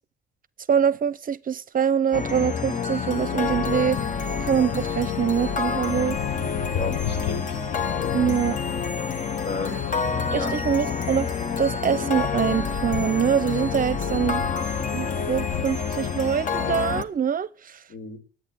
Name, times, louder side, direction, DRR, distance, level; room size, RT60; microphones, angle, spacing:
voice 1, 0.7-4.0 4.4-6.2 8.1-8.6 10.3-11.3 11.6-14.5 14.9-17.8, right 8 dB, 45° right, 0.7 m, -24 dB
sound 1, 2.1-17.0, left 6 dB, 40° left, 1.2 m, -28 dB
sound 2, 4.9-16.1, left 9 dB, 85° left, 1.1 m, -37 dB
voice 2, 6.7-7.5 8.0-8.3 9.4-9.9 10.3-10.6 17.9-18.2, left 4 dB, 60° left, 4.0 m, -33 dB
11.0 x 9.1 x 8.6 m
cardioid pair, 90°, 20 cm